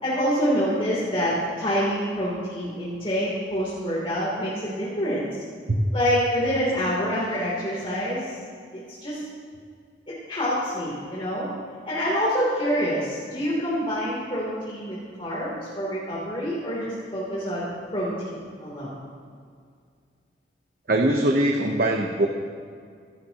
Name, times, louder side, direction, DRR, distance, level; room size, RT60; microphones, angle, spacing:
voice 1, 0.0-5.3 5.9-8.3 8.7-9.2 10.3-11.5 11.9-17.6 17.9-18.9, equal, 30° left, -7 dB, 3.2 m, -26 dB
voice 2, 20.9-22.3, right 1 dB, 55° right, 2 dB, 1.0 m, -21 dB
24.5 x 12.5 x 3.0 m, 2.2 s
head